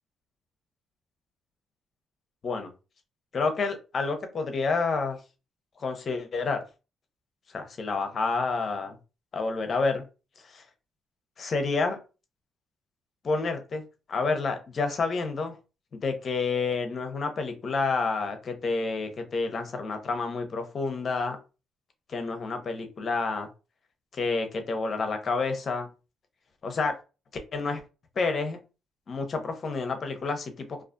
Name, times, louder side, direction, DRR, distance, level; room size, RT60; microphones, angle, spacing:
voice 1, 3.3-5.2 5.8-6.6 7.5-9.0 9.3-10.0 10.5-10.6 11.4-12.0 13.2-13.8 14.1-15.5 15.9-21.4 22.1-23.5 24.1-25.9 26.6-26.9 27.5-27.8 28.2-28.6 29.1-30.8, left 4 dB, 50° left, 6 dB, 0.6 m, -29 dB
2.4 x 2.4 x 2.5 m, 0.31 s
cardioid pair, 80°, 0 cm